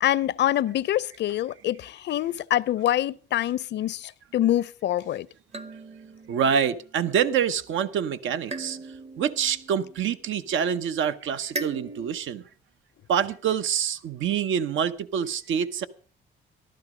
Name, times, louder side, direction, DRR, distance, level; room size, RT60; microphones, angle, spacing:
voice 1, 0.0-5.3, left 12 dB, 60° left, 0.5 m, -25 dB
sound 1, 5.5-7.1 8.5-10.6 11.5-12.2, right 2 dB, 30° right, 0.9 m, -39 dB
voice 2, 6.3-8.8 9.2-12.4 13.1-15.9, right 8 dB, 75° right, 1.0 m, -26 dB
14.0 x 12.5 x 5.0 m
cardioid pair, 90°, 20 cm